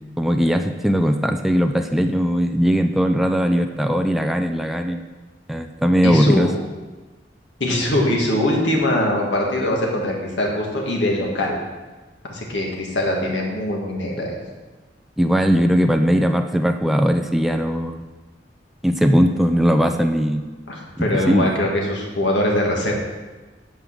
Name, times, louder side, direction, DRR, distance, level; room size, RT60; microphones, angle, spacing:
voice 1, 0.2-5.0 5.5-6.5 15.2-18.1 18.8-20.5 21.0-21.5, equal, ahead, 4 dB, 0.4 m, -19 dB
voice 2, 6.0-6.5 7.6-11.6 12.3-14.4 20.7-22.9, left 1 dB, 85° left, -1 dB, 2.0 m, -22 dB
9.3 x 5.2 x 6.3 m, 1.3 s
head